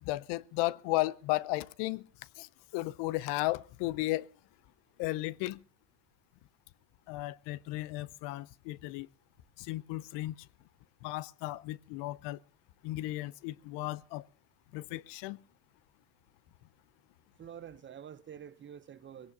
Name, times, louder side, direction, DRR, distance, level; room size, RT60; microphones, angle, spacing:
voice 1, 0.0-2.0 2.4-4.3 5.0-5.6 7.1-9.1 9.6-10.3 11.0-12.4 12.8-14.2 14.7-15.4, left 18 dB, 60° left, 0.7 m, -34 dB
voice 2, 17.4-19.3, right 9 dB, 25° right, 0.6 m, -47 dB
20.5 x 17.5 x 2.7 m
supercardioid pair, 115°, 48 cm